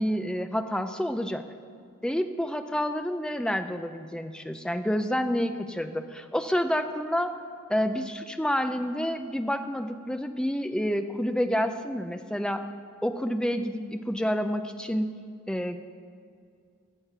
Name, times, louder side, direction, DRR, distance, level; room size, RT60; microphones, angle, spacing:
voice 1, 0.0-1.4 2.0-7.3 7.7-12.6 13.0-15.1 15.5-15.9, equal, 5° left, 8 dB, 0.4 m, -28 dB
13.0 x 7.5 x 6.7 m, 2.3 s
head